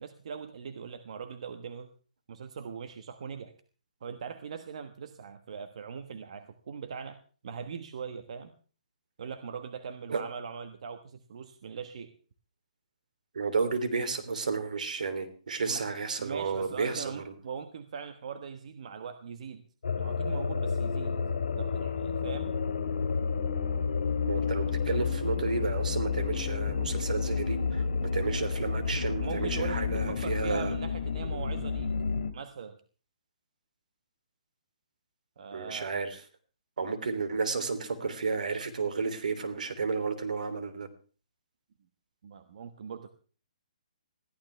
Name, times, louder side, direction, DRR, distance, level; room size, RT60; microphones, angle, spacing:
voice 1, 0.0-1.9 2.3-3.5 4.0-7.2 7.4-8.5 9.2-12.1 15.7-15.8 16.2-19.6 20.0-21.2 21.6-22.6 29.2-31.9 32.3-32.8 35.4-35.9 42.2-43.1, right 6 dB, 55° right, 9 dB, 1.4 m, -40 dB
voice 2, 13.3-17.3 24.2-30.7 35.5-36.2 36.8-40.9, right 4 dB, 80° right, 9 dB, 3.1 m, -32 dB
sound 1, 19.8-32.3, left 5 dB, 85° left, 2.3 m, -30 dB
21.5 x 14.5 x 3.4 m, 0.39 s
hypercardioid pair, 165°, 4 cm